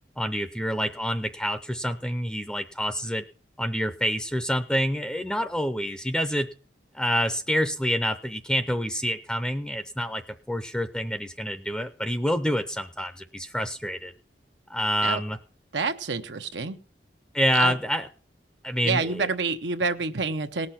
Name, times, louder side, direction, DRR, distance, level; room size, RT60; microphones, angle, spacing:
voice 1, 0.2-3.2 3.6-6.5 6.9-10.2 10.5-14.1 14.7-15.4 17.3-18.1 18.6-19.3, equal, 5° left, 9 dB, 0.5 m, -27 dB
voice 2, 15.7-16.8 17.5-17.7 18.8-20.7, right 4 dB, 90° right, 8 dB, 1.0 m, -28 dB
18.5 x 6.4 x 5.7 m, 0.39 s
head